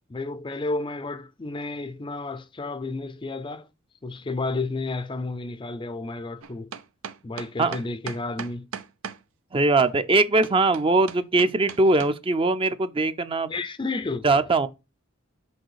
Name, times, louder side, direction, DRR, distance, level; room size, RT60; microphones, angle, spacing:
voice 1, 0.1-3.7 4.0-6.7 7.2-8.7 13.5-14.4, left 3 dB, 25° left, 0.4 m, -31 dB
sound 1, 6.4-9.2 9.8-12.1, right 6 dB, 90° right, 0.7 m, -37 dB
voice 2, 9.5-13.5 14.2-14.7, right 3 dB, 25° right, 0.5 m, -21 dB
6.4 x 4.8 x 4.7 m
head